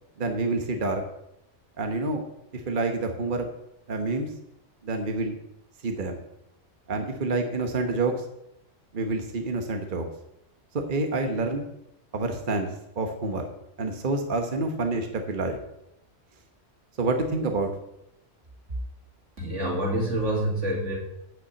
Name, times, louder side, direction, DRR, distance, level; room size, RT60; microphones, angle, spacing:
voice 1, 0.2-1.0 1.8-2.2 2.5-3.5 3.9-4.3 4.8-5.4 5.8-6.2 6.9-8.1 8.9-10.1 10.9-11.6 12.1-12.7 13.0-13.5 13.8-15.6 17.0-17.7, right 3 dB, 45° right, 4 dB, 1.2 m, -27 dB
voice 2, 19.4-21.0, right 1 dB, 85° right, -2 dB, 3.0 m, -27 dB
8.5 x 6.0 x 8.1 m, 0.83 s
omnidirectional pair, 1.2 m